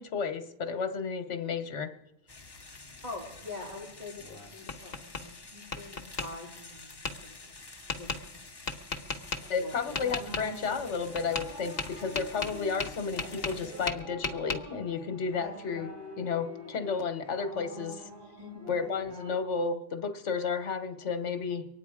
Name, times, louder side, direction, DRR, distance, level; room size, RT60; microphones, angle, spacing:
voice 1, 0.0-1.9 9.5-18.1 18.7-21.7, left 5 dB, 80° left, 10 dB, 1.4 m, -32 dB
sound 1, 2.3-13.9, left 3 dB, 20° left, 1.0 m, -49 dB
voice 2, 3.0-7.5 8.0-8.5 9.6-10.0 15.4-15.5 18.4-18.7, left 3 dB, 35° right, -5 dB, 3.4 m, -45 dB
Tap, 4.2-5.2 5.7-6.3 7.0-7.1 7.9-8.2 8.7-9.4 10.0-10.4 11.2-11.5 11.8-13.6 13.9-14.6, left 4 dB, 55° left, 1.3 m, -34 dB
sound 2, 8.8-19.4, equal, 55° right, 5.9 m, -46 dB
24.0 x 9.6 x 4.8 m, 0.87 s
omnidirectional pair, 1.2 m